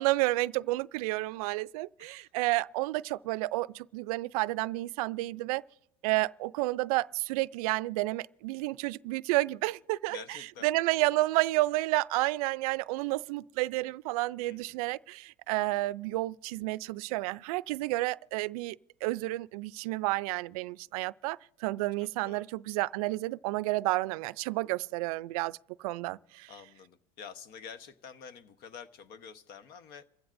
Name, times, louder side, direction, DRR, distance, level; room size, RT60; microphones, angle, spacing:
voice 1, 0.0-5.6 6.0-10.2 10.6-18.8 19.0-26.5, right 20 dB, 80° right, 0.4 m, -31 dB
voice 2, 2.0-2.3 10.1-10.8 14.5-14.9 22.0-22.5 26.5-30.1, left 6 dB, 55° left, 1.1 m, -48 dB
27.5 x 15.0 x 2.6 m
supercardioid pair, 115°, 18 cm